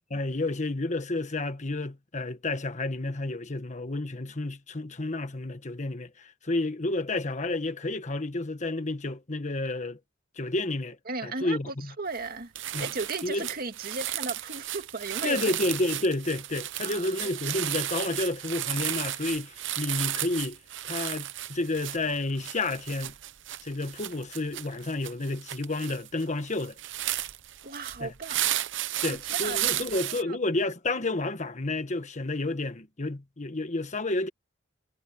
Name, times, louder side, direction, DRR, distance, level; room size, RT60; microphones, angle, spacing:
voice 1, 0.1-10.0 10.4-11.0 11.2-11.9 12.7-12.9 13.2-13.5 15.2-20.6 20.8-23.1 23.6-26.8 28.0-28.1 29.0-34.3, left 2 dB, 40° left, 1.4 m, -30 dB
voice 2, 11.1-12.5 12.8-15.5 16.8-17.1 27.6-28.4 29.1-29.8 30.3-30.4, right 3 dB, 50° right, 2.0 m, -36 dB
sound 1, 12.1-12.3 12.6-30.2, right 13 dB, 70° right, 0.8 m, -34 dB
head